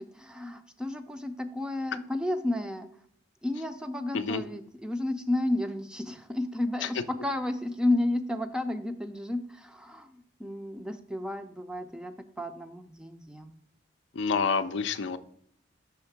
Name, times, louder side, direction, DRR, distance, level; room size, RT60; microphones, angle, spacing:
voice 1, 0.0-2.9 3.4-13.5, left 1 dB, 5° right, 8 dB, 0.3 m, -32 dB
voice 2, 14.1-15.2, left 5 dB, 75° left, 11 dB, 0.4 m, -28 dB
5.7 x 3.5 x 5.8 m, 0.66 s
head